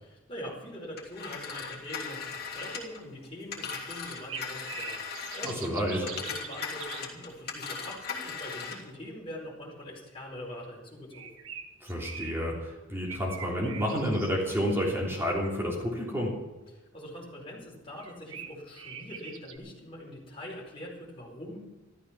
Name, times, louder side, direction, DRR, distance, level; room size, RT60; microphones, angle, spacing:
voice 1, 0.0-11.4 16.9-21.6, left 1 dB, 25° left, -3 dB, 4.9 m, -43 dB
Telephone, 1.0-5.7 6.0-8.9, left 5 dB, 50° left, 3.0 m, -38 dB
sound 1, 4.1-7.0 11.1-12.3 13.1-14.8 18.0-19.6, right 7 dB, 75° right, 1.5 m, -43 dB
voice 2, 5.4-6.0 11.8-16.4, equal, 10° right, -4 dB, 3.3 m, -30 dB
14.0 x 13.0 x 6.1 m, 1.1 s
head